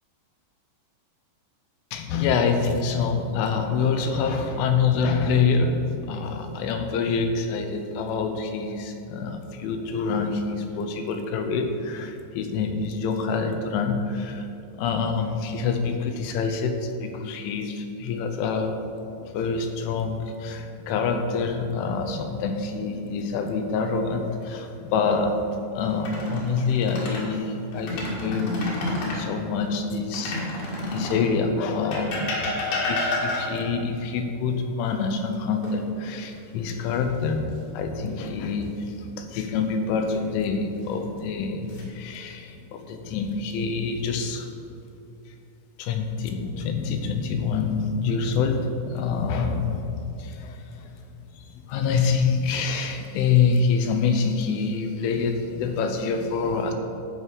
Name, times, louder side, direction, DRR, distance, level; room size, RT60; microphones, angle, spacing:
voice 1, 1.9-14.5 14.8-18.8 19.2-25.4 25.7-28.6 29.1-30.4 30.8-32.6 32.9-44.5 45.8-50.9 51.3-56.7, left 5 dB, 80° left, 6 dB, 3.1 m, -26 dB
sound 1, 25.9-27.3 27.7-29.3 30.1-31.3 31.9-33.7 35.6-36.3 36.7-36.9 39.9-40.5 41.2-41.8, left 2 dB, 60° left, 2.9 m, -30 dB
13.5 x 4.9 x 5.5 m, 2.7 s
omnidirectional pair, 5.7 m